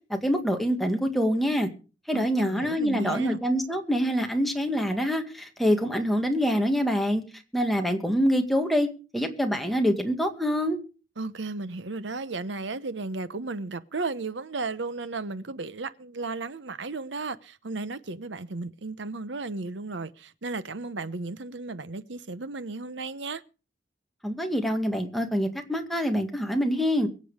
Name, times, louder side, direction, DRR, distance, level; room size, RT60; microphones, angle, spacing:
voice 1, 0.1-1.7 2.1-7.2 7.5-8.9 9.1-10.8 24.2-27.1, equal, ahead, 1.9 m, -25 dB
voice 2, 2.1-3.4 11.2-23.4, right 3 dB, 80° right, 1.0 m, -34 dB
23.0 x 7.8 x 5.0 m
head